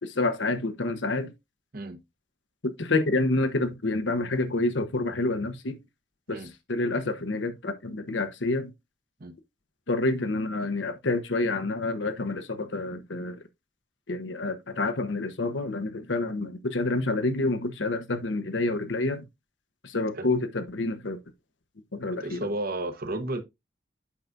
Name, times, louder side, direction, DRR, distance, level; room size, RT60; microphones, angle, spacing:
voice 1, 0.0-1.3 2.6-5.8 6.3-8.7 9.9-13.4 14.1-19.3 19.8-21.2 21.9-22.5, left 2 dB, 75° left, 1.0 m, -28 dB
voice 2, 22.2-23.4, right 2 dB, 55° right, 1.1 m, -32 dB
8.6 x 5.9 x 2.5 m
head